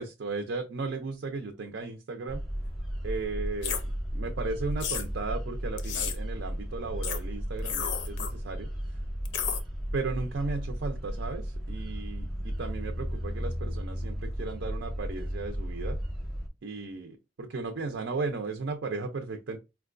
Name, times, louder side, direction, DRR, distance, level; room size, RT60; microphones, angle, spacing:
voice 1, 0.0-2.4 3.0-3.8 4.1-8.7 9.9-16.0 16.6-19.6, right 3 dB, 70° right, 0.5 m, -35 dB
sound 1, 2.3-16.5, equal, ahead, 0.6 m, -34 dB
sound 2, 3.6-3.8 4.8-5.0 5.8-6.2 7.0-7.2 7.6-8.3 9.2-9.6, left 8 dB, 75° left, 0.6 m, -32 dB
4.4 x 2.2 x 2.4 m
head